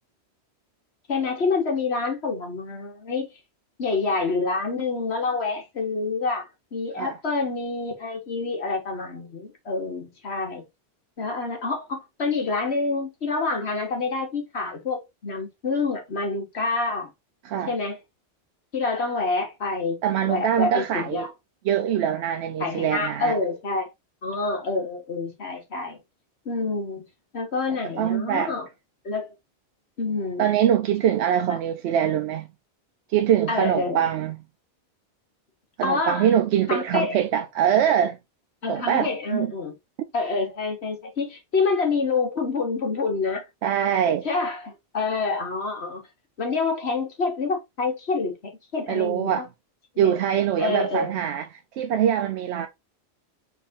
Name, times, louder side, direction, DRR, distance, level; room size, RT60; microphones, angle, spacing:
voice 1, 1.1-3.3 3.8-6.4 6.7-10.6 11.2-17.1 17.7-18.0 18.7-21.3 22.6-23.9 24.2-26.0 26.4-27.1 27.3-28.7 29.0-29.3 30.0-30.6 33.5-34.1 35.8-36.3 36.7-37.2 38.6-39.7 40.1-43.4 44.2-46.0 46.4-49.5 49.9-50.2 50.6-51.2, left 3 dB, 75° left, 1.8 m, -27 dB
voice 2, 20.0-21.3 21.6-23.4 28.0-28.5 30.4-32.5 33.1-34.4 35.8-38.2 38.7-39.5 43.6-44.3 48.9-49.4 50.0-52.7, right 9 dB, 90° right, 0.9 m, -23 dB
4.1 x 3.4 x 3.7 m
omnidirectional pair, 1.1 m